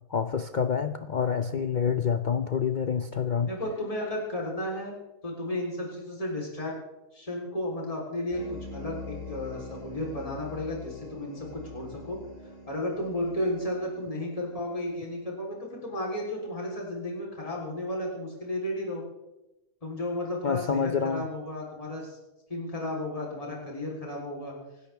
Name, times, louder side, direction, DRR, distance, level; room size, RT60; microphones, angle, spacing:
voice 1, 0.1-3.5 20.4-21.3, left 6 dB, 75° left, 9 dB, 0.4 m, -27 dB
voice 2, 3.4-5.0 5.2-6.7 7.1-12.2 12.7-19.0 19.8-22.2 22.5-24.5, left 1 dB, 20° left, -2 dB, 3.6 m, -33 dB
sound 1, 8.3-15.7, left 2 dB, 25° right, 3.1 m, -44 dB
25.0 x 13.0 x 3.4 m, 0.98 s
omnidirectional pair, 1.6 m